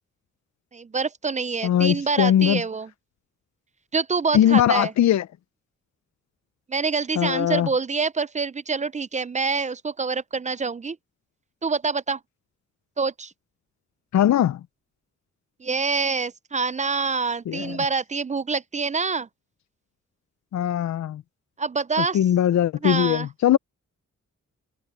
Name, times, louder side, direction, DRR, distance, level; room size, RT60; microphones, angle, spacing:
voice 1, 0.7-2.9 3.9-4.9 6.7-11.0 11.6-12.2 13.0-13.3 15.6-19.3 21.6-22.2 22.8-23.3, right 4 dB, 25° right, 0.4 m, -26 dB
voice 2, 1.6-2.6 4.3-5.2 7.2-7.7 14.1-14.6 17.5-17.8 20.5-21.2 22.1-23.6, left 11 dB, 65° left, 0.5 m, -20 dB
cardioid pair, 85°, 30 cm